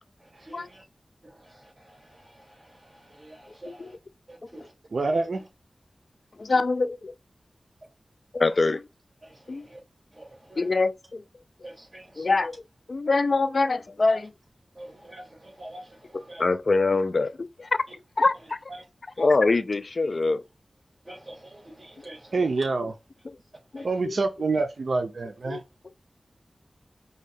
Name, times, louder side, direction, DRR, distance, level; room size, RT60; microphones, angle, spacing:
voice 1, 0.2-0.8 1.2-4.0 4.3-4.7 5.1-5.5 6.5-6.6 8.5-8.6 9.2-9.8 10.1-10.8 11.6-12.5 14.1-14.3 14.7-16.4 17.9-18.0 18.3-18.9 19.2-19.4 21.0-22.6 23.8-24.0, right 1 dB, 35° right, 2.3 m, -47 dB
voice 2, 4.9-5.4 22.3-22.9 23.8-25.6, right 3 dB, 75° right, 0.4 m, -26 dB
voice 3, 6.4-7.1 8.3-8.8 9.5-9.6 10.6-11.2 12.2-12.5 12.9-14.2 16.4-17.7 18.2-18.3 19.2-20.4 23.7-24.2 25.5-25.6, left 3 dB, 60° left, 0.3 m, -24 dB
5.3 x 2.2 x 3.2 m
wide cardioid pair, 65°, 0 cm